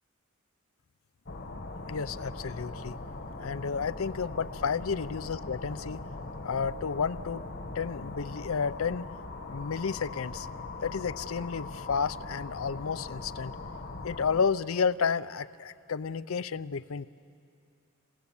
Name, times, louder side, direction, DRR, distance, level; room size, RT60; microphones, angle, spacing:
sound 1, 1.3-14.4, left 2 dB, 50° left, 1.1 m, -40 dB
voice 1, 1.9-3.0 3.4-6.0 6.4-7.4 7.7-9.0 9.5-10.5 10.8-13.5 14.0-17.1, left 6 dB, 85° left, 15 dB, 0.6 m, -31 dB
28.0 x 27.5 x 7.2 m, 2.6 s
head